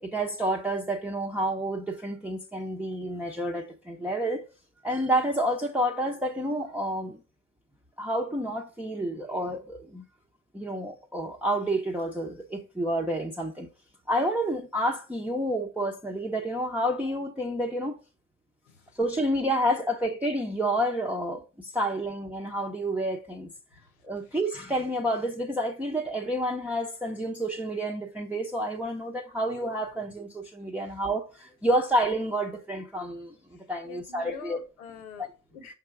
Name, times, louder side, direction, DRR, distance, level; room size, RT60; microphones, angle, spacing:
voice 1, 0.0-4.4 4.8-7.2 8.0-10.0 10.5-13.7 14.1-18.0 19.0-23.5 24.0-34.6, right 1 dB, 5° right, 0.8 m, -29 dB
voice 2, 18.7-19.0 19.6-19.7 23.7-24.4 30.8-31.0 33.5-35.7, left 8 dB, 85° left, 1.0 m, -47 dB
5.9 x 3.7 x 4.5 m
hypercardioid pair, 55°, 43 cm